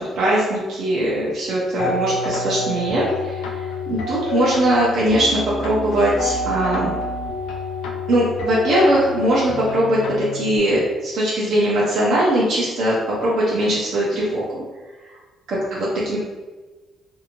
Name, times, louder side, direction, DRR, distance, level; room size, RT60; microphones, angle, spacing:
voice 1, 0.1-6.9 8.1-14.6 15.1-15.2 15.5-16.2, right 1 dB, 70° right, -7 dB, 0.7 m, -20 dB
sound 1, 1.8-10.6, left 3 dB, 85° left, 0.4 m, -28 dB
2.8 x 2.7 x 2.6 m, 1.3 s
cardioid pair, 90°, 0 cm